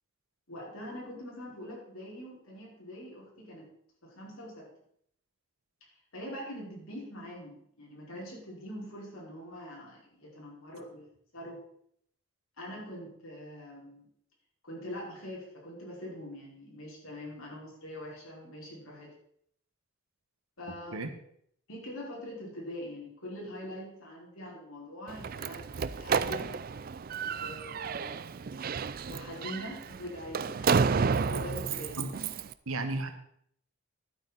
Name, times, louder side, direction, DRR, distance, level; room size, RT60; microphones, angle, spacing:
voice 1, 0.5-3.7 4.0-4.7 6.1-11.1 11.3-11.6 12.6-14.1 14.6-19.1 20.6-21.1 21.7-26.5 27.3-28.5 29.1-32.2, left 1 dB, 80° left, -3 dB, 4.7 m, -43 dB
Slam, 25.1-32.5, right 5 dB, 45° right, 0.4 m, -31 dB
voice 2, 32.7-33.1, right 2 dB, 85° right, 7 dB, 1.4 m, -33 dB
12.0 x 8.9 x 4.1 m, 0.68 s
head